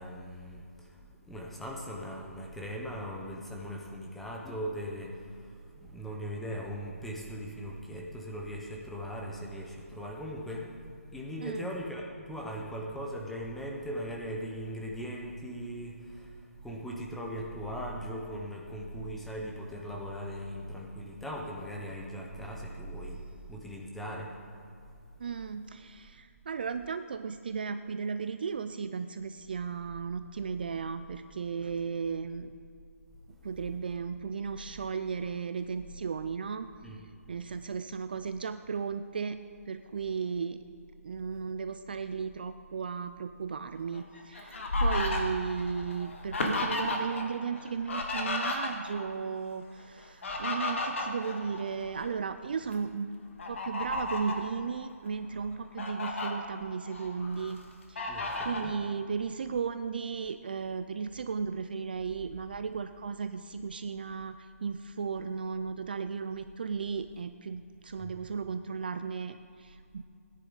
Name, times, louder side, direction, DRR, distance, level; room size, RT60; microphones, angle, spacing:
voice 1, 0.0-5.2 5.8-10.8 11.1-16.3 16.6-23.2 23.5-24.3 36.8-37.0 58.1-58.7 68.0-68.2, equal, ahead, -1 dB, 0.6 m, -39 dB
voice 2, 25.2-32.5 33.4-36.7 37.3-40.6 41.0-53.2 53.5-57.6 57.9-70.0, right 5 dB, 35° right, 10 dB, 0.3 m, -35 dB
Fowl, 43.9-47.2 47.5-49.1 50.0-52.1 52.5-52.7 53.4-54.4 55.1-55.2 55.5-56.3 56.8-57.5 58.0-58.7, left 2 dB, 50° left, 1.7 m, -33 dB
17.0 x 10.0 x 3.9 m, 2.3 s
hypercardioid pair, 170°, 8 cm